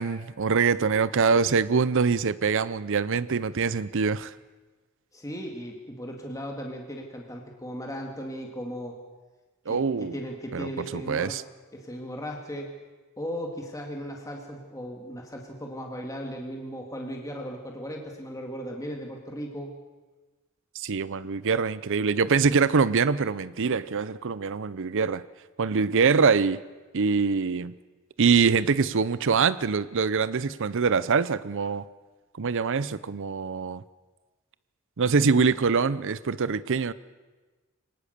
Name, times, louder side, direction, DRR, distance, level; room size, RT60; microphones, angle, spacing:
voice 1, 0.0-4.3 9.7-10.1 10.5-11.4 20.7-25.2 25.6-26.6 26.9-27.7 28.2-31.8 32.4-33.8 35.0-36.9, right 5 dB, 60° right, 17 dB, 0.6 m, -24 dB
voice 2, 5.1-9.0 9.7-11.4 11.7-12.8 13.2-19.7, equal, 15° left, 1 dB, 2.2 m, -37 dB
24.0 x 19.0 x 6.7 m, 1.3 s
head